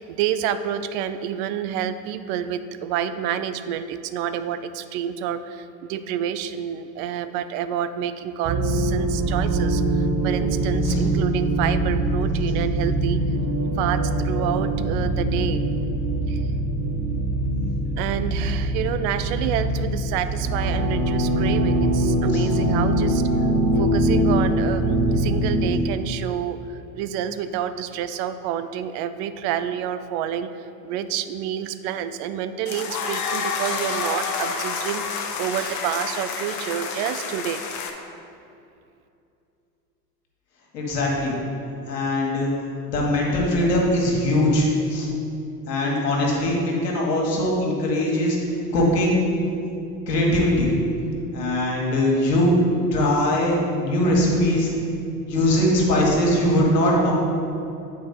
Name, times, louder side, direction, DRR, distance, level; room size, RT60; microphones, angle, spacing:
voice 1, 0.0-13.2 13.8-15.6 16.3-16.4 18.0-23.2 23.8-30.5 30.8-37.6, right 9 dB, 50° right, 11 dB, 0.5 m, -28 dB
sound 1, 8.4-25.7, right 1 dB, 30° right, 0.9 m, -23 dB
sound 2, 32.7-37.9, left 5 dB, 40° left, 0.9 m, -29 dB
voice 2, 40.7-41.4 41.9-42.5 42.9-45.1 45.7-49.2 50.1-50.7 51.3-52.5 52.9-54.7 55.3-57.1, left 1 dB, 80° left, -2 dB, 1.7 m, -21 dB
8.1 x 4.6 x 4.3 m, 2.6 s
hypercardioid pair, 80°, 47 cm